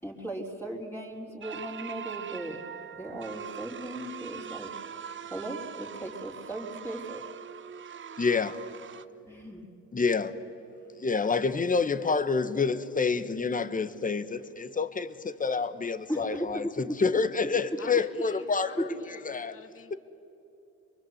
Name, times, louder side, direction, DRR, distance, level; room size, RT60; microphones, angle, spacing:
voice 1, 0.0-2.6 2.9-4.7 5.3-7.2 9.2-9.7 16.1-16.8, right 1 dB, 5° left, -2 dB, 3.8 m, -37 dB
sound 1, 1.4-9.0, right 8 dB, 40° right, 0.9 m, -42 dB
voice 2, 8.2-8.6 9.9-10.3 11.0-18.7 19.3-19.5, left 4 dB, 25° left, 11 dB, 1.4 m, -28 dB
voice 3, 17.8-19.9, left 5 dB, 45° left, 7 dB, 2.3 m, -48 dB
24.5 x 23.5 x 8.0 m, 2.9 s
cardioid pair, 90°, 30 cm